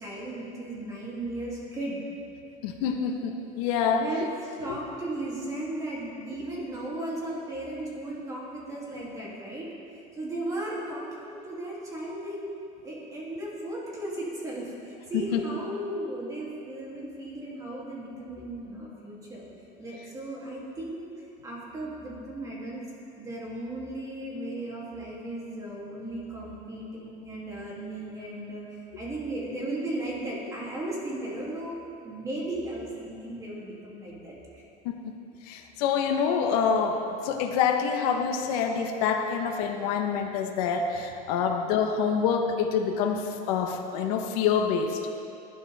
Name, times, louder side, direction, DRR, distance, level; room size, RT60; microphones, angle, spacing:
voice 1, 0.0-2.0 3.8-9.7 10.2-12.4 12.8-19.4 19.8-21.0 21.4-22.8 23.1-31.8 32.0-34.6, right 1 dB, 20° right, -5 dB, 3.0 m, -36 dB
voice 2, 2.6-4.0 4.7-4.8 15.3-15.4 34.8-35.0 35.5-45.0, left 6 dB, 85° left, 4 dB, 1.3 m, -26 dB
18.5 x 12.0 x 3.6 m, 2.6 s
cardioid pair, 165°, 19 cm